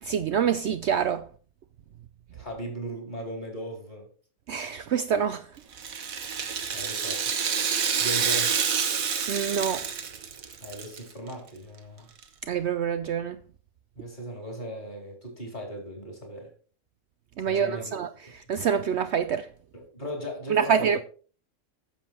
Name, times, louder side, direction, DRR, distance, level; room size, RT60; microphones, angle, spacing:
voice 1, 0.0-1.3 4.5-5.5 9.3-9.9 12.5-13.4 17.4-19.5 20.5-21.0, right 7 dB, 65° right, 0.8 m, -26 dB
voice 2, 2.3-4.1 6.7-7.3 8.0-8.7 10.6-12.1 13.9-16.5 17.4-17.9 19.7-20.9, right 1 dB, 35° left, 4.2 m, -37 dB
Rattle (instrument), 5.7-11.0 11.3-11.4 12.2-12.3, right 6 dB, 85° right, 1.6 m, -28 dB
10.0 x 7.6 x 4.5 m
omnidirectional pair, 1.4 m